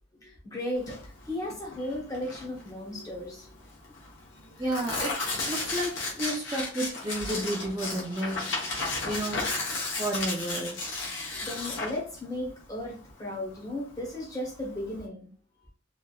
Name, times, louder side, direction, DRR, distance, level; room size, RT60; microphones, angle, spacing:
voice 1, 0.2-3.5 11.2-15.3, left 1 dB, 20° left, -2 dB, 0.9 m, -35 dB
Tearing, 0.8-15.0, left 3 dB, 75° left, 0.9 m, -34 dB
voice 2, 4.6-8.5 9.0-9.4 10.0-10.8, right 1 dB, 20° right, -3 dB, 0.4 m, -32 dB
2.9 x 2.5 x 2.3 m, 0.38 s
head